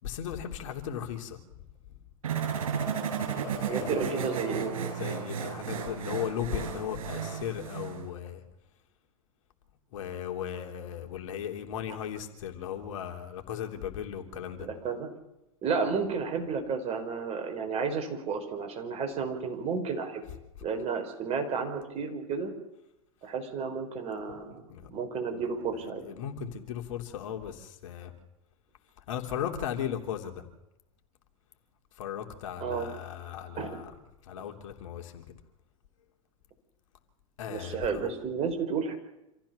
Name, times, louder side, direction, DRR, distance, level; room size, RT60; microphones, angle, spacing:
voice 1, 0.0-1.4 3.5-4.2 5.0-8.4 9.9-14.7 24.7-24.9 25.3-25.4 25.8-28.1 29.1-30.4 32.0-33.9 34.2-35.2 37.4-38.1, left 9 dB, 65° left, 4 dB, 3.2 m, -37 dB
sound 1, 2.2-8.0, right 7 dB, 75° right, 6.5 m, -33 dB
voice 2, 3.7-4.7 14.6-15.1 15.6-20.2 20.6-22.5 23.2-24.6 24.9-26.0 32.6-32.9 33.6-33.8 34.4-34.5 37.5-38.9, right 5 dB, 35° right, 5 dB, 5.0 m, -32 dB
27.0 x 15.0 x 7.0 m, 0.89 s
hypercardioid pair, 95°, 18 cm